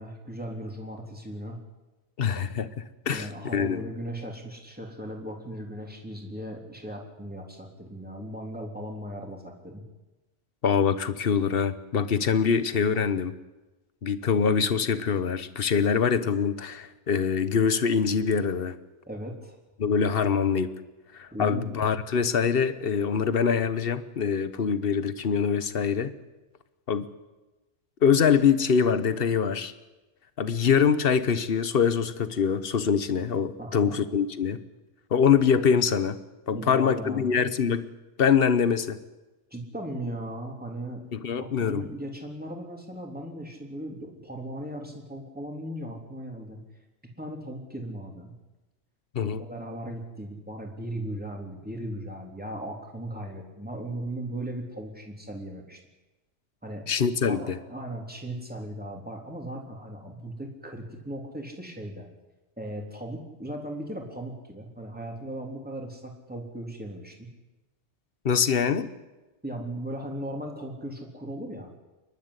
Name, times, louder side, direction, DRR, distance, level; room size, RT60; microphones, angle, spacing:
voice 1, 0.0-1.6 3.1-9.8 19.1-19.6 21.3-21.8 33.6-34.0 36.5-37.3 39.5-41.0 41.4-46.6 47.2-48.3 49.2-55.8 56.6-56.8 57.3-62.1 62.6-67.3 69.4-71.7, right 1 dB, 5° right, 0 dB, 3.5 m, -37 dB
voice 2, 2.2-2.7 3.1-3.8 10.6-13.3 14.0-18.7 19.8-20.7 21.1-26.1 26.9-27.1 28.0-29.7 30.4-34.6 35.1-36.2 36.5-37.8 38.2-39.0 41.1-41.8 49.1-49.4 56.9-57.6 68.2-68.9, left 6 dB, 50° left, 13 dB, 1.3 m, -24 dB
29.0 x 12.0 x 9.8 m, 1.1 s
omnidirectional pair, 1.2 m